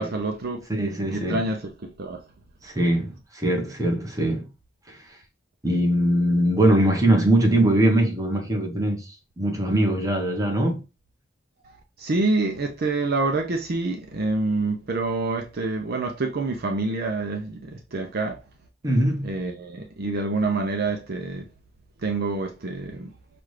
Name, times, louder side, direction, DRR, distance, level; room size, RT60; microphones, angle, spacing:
voice 1, 0.0-0.7 1.1-2.2 11.6-11.7 12.0-18.4 19.2-21.4 22.0-23.1, right 3 dB, 55° right, 0.6 m, -27 dB
voice 2, 0.7-1.5 2.6-4.5 4.9-5.2 5.6-10.8 18.8-19.3, right 1 dB, 20° right, 1.1 m, -22 dB
5.9 x 2.5 x 3.2 m
head